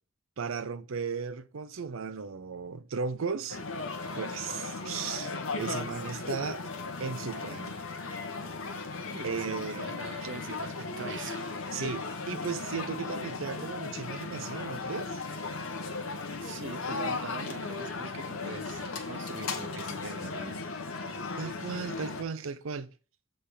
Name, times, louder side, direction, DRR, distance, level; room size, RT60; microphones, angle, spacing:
voice 1, 0.4-3.6 4.1-6.6 7.0-7.8 9.2-9.9 11.7-15.2 21.4-22.9, right 5 dB, 80° right, 0.6 m, -36 dB
sound 1, 3.5-22.2, left 3 dB, 90° left, 1.3 m, -36 dB
voice 2, 9.1-11.4 16.4-20.6, right 4 dB, 60° right, 1.0 m, -43 dB
7.8 x 3.6 x 6.4 m
head